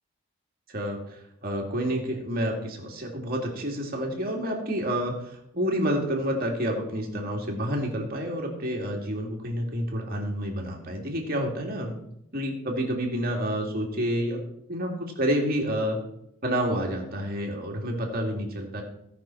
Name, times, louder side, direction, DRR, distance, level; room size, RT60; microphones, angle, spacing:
voice 1, 0.7-11.9 12.3-14.4 14.7-16.0 16.4-18.8, equal, 40° right, 0 dB, 2.2 m, -29 dB
17.0 x 5.9 x 4.4 m, 0.78 s
head